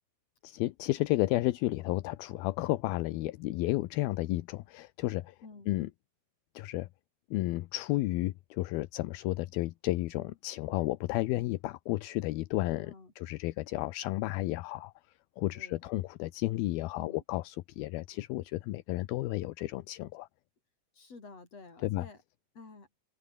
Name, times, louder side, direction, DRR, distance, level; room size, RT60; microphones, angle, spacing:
voice 1, 0.4-5.4 5.7-5.9 6.5-6.9 7.3-14.9 15.4-20.3 21.8-22.1, left 18 dB, 75° left, 2.5 m, -32 dB
voice 2, 20.9-22.2 22.6-22.9, left 4 dB, 35° left, 7.0 m, -49 dB
open air
omnidirectional pair, 4.8 m